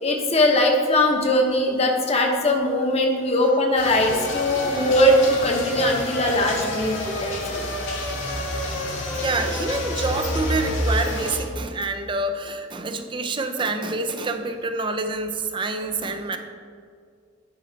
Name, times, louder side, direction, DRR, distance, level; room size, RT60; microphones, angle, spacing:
voice 1, 0.0-7.7, left 1 dB, 35° left, 2 dB, 1.0 m, -20 dB
sound 1, 3.8-11.4, left 1 dB, 75° left, 1.6 m, -28 dB
voice 2, 9.1-16.4, right 3 dB, 25° right, 7 dB, 0.5 m, -27 dB
9.6 x 5.5 x 3.9 m, 2.2 s
head